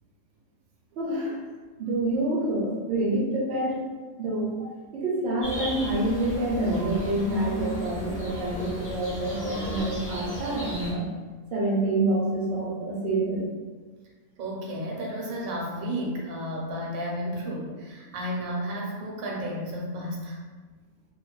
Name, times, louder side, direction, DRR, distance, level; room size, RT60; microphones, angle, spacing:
voice 1, 1.0-1.4 1.8-3.8 4.2-11.1 11.5-13.5, right 1 dB, 60° right, -3 dB, 0.7 m, -27 dB
sound 1, 5.4-10.9, equal, 15° left, 0.8 m, -35 dB
voice 2, 14.4-20.4, equal, 80° right, -2 dB, 1.0 m, -32 dB
2.6 x 2.3 x 2.2 m, 1.4 s
omnidirectional pair, 1.5 m